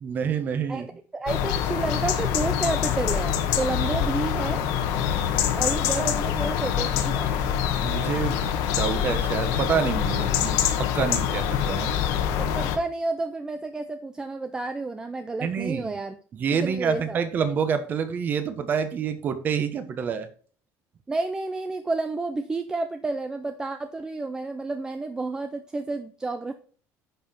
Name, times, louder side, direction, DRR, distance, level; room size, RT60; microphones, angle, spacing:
voice 1, 0.0-0.9 7.8-8.4 8.7-11.9 15.4-16.0 16.3-20.3, right 7 dB, 30° right, 10 dB, 1.1 m, -27 dB
voice 2, 0.7-4.6 5.6-7.4 12.4-16.2 16.5-17.2 21.1-26.5, right 3 dB, 10° right, 8 dB, 0.5 m, -30 dB
sound 1, 1.3-12.8, left 9 dB, 75° left, 1.5 m, -25 dB
10.0 x 5.7 x 4.4 m, 0.42 s
cardioid pair, 180°, 6 cm